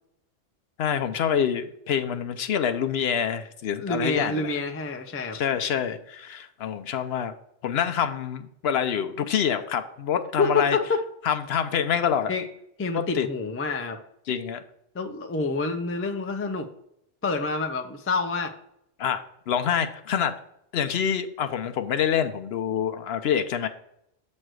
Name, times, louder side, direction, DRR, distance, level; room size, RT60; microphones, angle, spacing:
voice 1, 0.8-4.5 5.3-7.3 7.6-10.8 11.2-12.3 13.1-13.3 14.3-14.6 19.0-20.3 20.7-23.7, left 8 dB, 70° left, 8 dB, 0.8 m, -26 dB
voice 2, 3.8-5.4 10.4-11.0 12.3-12.4 12.8-14.0 14.9-16.7 17.2-18.5, left 4 dB, 20° left, 5 dB, 0.4 m, -27 dB
7.8 x 3.2 x 6.1 m, 0.75 s
omnidirectional pair, 1.2 m